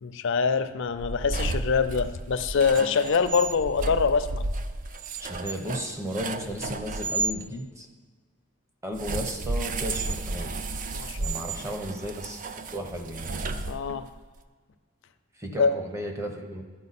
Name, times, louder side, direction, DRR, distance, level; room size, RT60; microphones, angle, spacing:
voice 1, 0.0-4.4 10.9-11.4 13.7-14.1 15.5-15.7, left 5 dB, 60° left, 10 dB, 0.5 m, -25 dB
sound 1, 0.9-7.4 8.9-14.2, right 3 dB, 40° right, 0.4 m, -33 dB
voice 2, 5.2-7.9 8.8-10.5 11.2-12.4 12.7-13.3 15.4-16.6, equal, 15° right, 3 dB, 0.9 m, -34 dB
11.5 x 4.6 x 4.2 m, 1.5 s
head